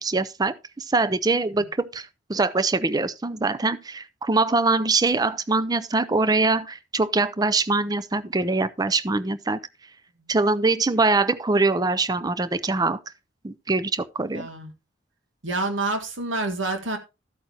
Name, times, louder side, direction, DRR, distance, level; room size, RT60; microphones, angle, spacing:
voice 1, 0.0-9.6 10.3-13.0 13.4-14.5, right 3 dB, 20° right, 0.5 m, -23 dB
voice 2, 14.3-14.7 15.4-17.0, right 2 dB, 85° right, 1.9 m, -28 dB
13.5 x 8.5 x 2.9 m
head